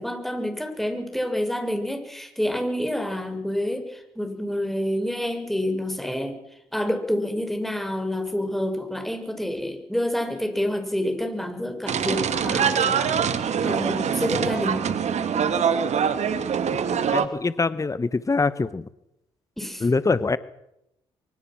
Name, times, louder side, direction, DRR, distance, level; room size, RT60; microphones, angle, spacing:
voice 1, 0.0-6.4 6.7-14.8 19.6-19.9, left 1 dB, ahead, 5 dB, 6.5 m, -28 dB
sound 1, 11.9-17.3, right 7 dB, 55° right, 2.3 m, -24 dB
voice 2, 17.1-18.9 19.8-20.4, left 3 dB, 25° left, 16 dB, 1.1 m, -23 dB
23.5 x 22.5 x 6.2 m, 0.83 s
hypercardioid pair, 50°, 14 cm